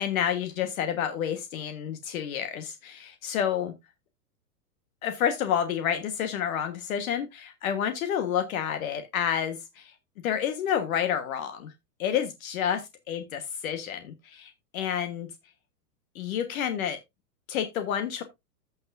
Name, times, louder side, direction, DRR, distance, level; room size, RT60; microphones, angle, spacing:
voice 1, 0.0-3.7 5.0-9.9 10.2-11.7 12.0-12.8 13.1-15.3 16.1-17.0 17.5-18.2, left 9 dB, 60° left, 1.4 m, -29 dB
15.0 x 5.9 x 2.6 m
hypercardioid pair, 115°, 48 cm